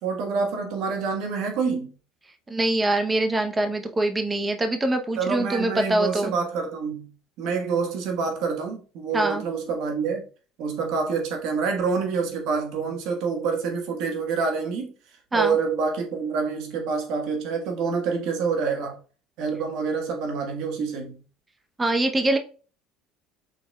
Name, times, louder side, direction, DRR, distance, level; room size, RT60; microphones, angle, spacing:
voice 1, 0.0-1.9 5.2-7.1 7.4-10.2 10.6-14.9 15.3-19.0 19.4-21.2, right 5 dB, 65° right, 1.3 m, -27 dB
voice 2, 2.5-6.3 9.1-9.4 15.3-15.6 21.8-22.4, right 2 dB, 20° right, 0.8 m, -24 dB
5.6 x 4.1 x 2.3 m
hypercardioid pair, 80°, 0 cm